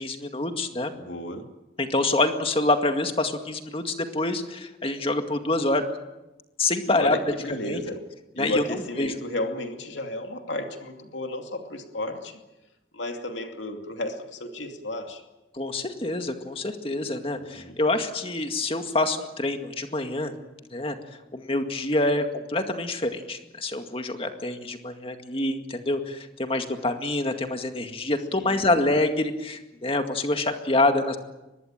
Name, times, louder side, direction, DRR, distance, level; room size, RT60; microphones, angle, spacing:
voice 1, 0.0-0.9 1.8-5.8 6.6-7.2 7.6-7.8 8.4-8.6 9.0-9.1 15.5-20.3 20.7-21.0 21.3-31.2, left 2 dB, 30° left, 6 dB, 2.1 m, -26 dB
voice 2, 0.9-1.5 6.8-8.1 8.4-12.4 12.9-15.2 17.5-17.8 28.4-28.7, left 1 dB, 85° left, 4 dB, 2.7 m, -33 dB
23.5 x 20.0 x 9.0 m, 1.0 s
head